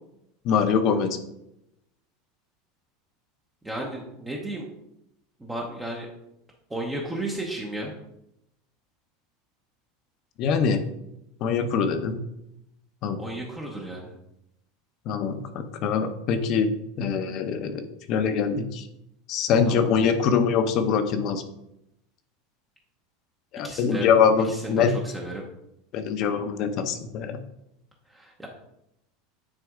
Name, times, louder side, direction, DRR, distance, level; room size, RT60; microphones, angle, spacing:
voice 1, 0.4-1.1 10.4-10.8 11.4-12.2 13.0-13.2 15.1-18.9 19.3-21.4 23.5-24.9 25.9-27.4, left 6 dB, 40° left, 8 dB, 0.8 m, -23 dB
voice 2, 3.6-4.7 5.4-6.1 6.7-7.9 13.2-14.1 19.6-19.9 23.6-24.1 24.4-25.4 28.1-28.5, right 1 dB, 5° right, -2 dB, 0.9 m, -34 dB
9.8 x 4.2 x 3.7 m, 0.82 s
supercardioid pair, 165°, 0 cm